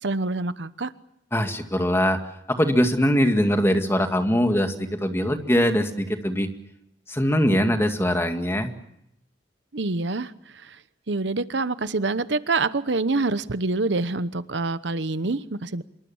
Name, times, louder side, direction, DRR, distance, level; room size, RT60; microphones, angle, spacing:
voice 1, 0.0-0.9 9.7-10.8 11.1-15.8, right 3 dB, 80° right, 14 dB, 1.0 m, -26 dB
voice 2, 1.3-2.2 2.5-6.5 7.1-8.7, equal, 15° left, 6 dB, 2.1 m, -22 dB
26.5 x 23.0 x 7.2 m, 0.77 s
head